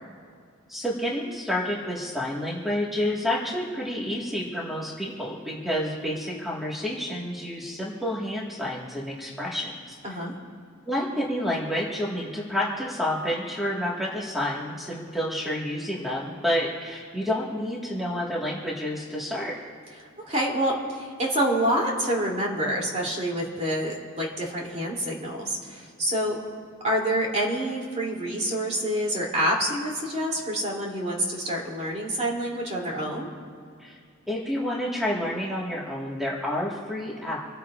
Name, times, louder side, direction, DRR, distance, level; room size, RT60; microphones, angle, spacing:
voice 1, 0.7-10.2 10.8-19.5 33.8-34.0 34.3-37.4, left 1 dB, ahead, -5 dB, 1.7 m, -29 dB
voice 2, 20.3-26.4 26.8-33.3, right 1 dB, 35° right, -2 dB, 2.9 m, -27 dB
27.5 x 15.0 x 2.5 m, 2.3 s
head